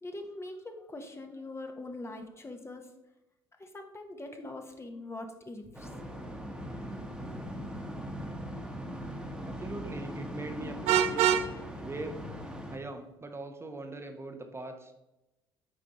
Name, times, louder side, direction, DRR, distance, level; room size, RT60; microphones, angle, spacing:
voice 1, 0.0-2.9 3.6-5.9, left 2 dB, 20° left, 4 dB, 1.1 m, -42 dB
sound 1, 5.7-12.8, equal, 5° right, 1.3 m, -40 dB
voice 2, 9.4-11.3 11.8-12.2 12.7-14.9, right 2 dB, 20° right, 5 dB, 0.9 m, -41 dB
Vehicle horn car horn honking, 10.8-11.5, right 9 dB, 65° right, 0.5 m, -24 dB
8.1 x 5.0 x 3.0 m, 0.94 s
hypercardioid pair, 55°, 12 cm